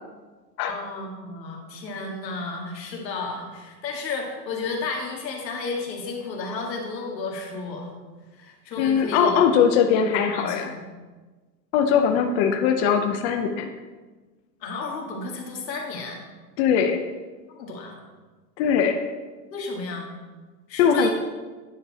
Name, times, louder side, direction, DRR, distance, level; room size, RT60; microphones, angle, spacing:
voice 1, 0.7-7.9 8.3-9.4 9.9-10.8 14.6-16.2 17.5-18.0 19.5-20.1 20.7-21.1, left 3 dB, 85° left, 0 dB, 1.9 m, -32 dB
voice 2, 8.8-10.7 11.7-13.7 16.6-17.0 18.6-19.0 20.8-21.1, left 7 dB, 45° left, 5 dB, 0.6 m, -20 dB
9.8 x 4.5 x 4.1 m, 1.3 s
hypercardioid pair, 130°, 49 cm